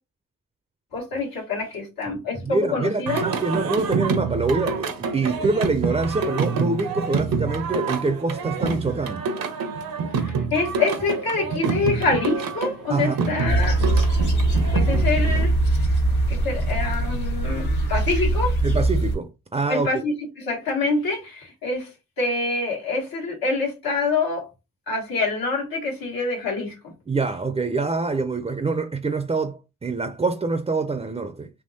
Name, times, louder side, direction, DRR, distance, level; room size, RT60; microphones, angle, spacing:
voice 1, 0.9-3.2 10.1-13.8 14.7-15.5 16.3-18.6 19.7-21.9 22.2-24.5 24.9-26.9, left 3 dB, 90° left, 1.4 m, -26 dB
voice 2, 2.4-9.2 12.9-13.2 18.6-19.9 27.1-31.5, right 3 dB, 20° right, 0.4 m, -25 dB
Singing, 3.1-15.4, right 5 dB, 85° right, 0.7 m, -27 dB
sound 1, 13.5-19.2, right 2 dB, 60° left, 1.3 m, -21 dB
3.5 x 2.9 x 2.6 m
cardioid pair, 75°, 34 cm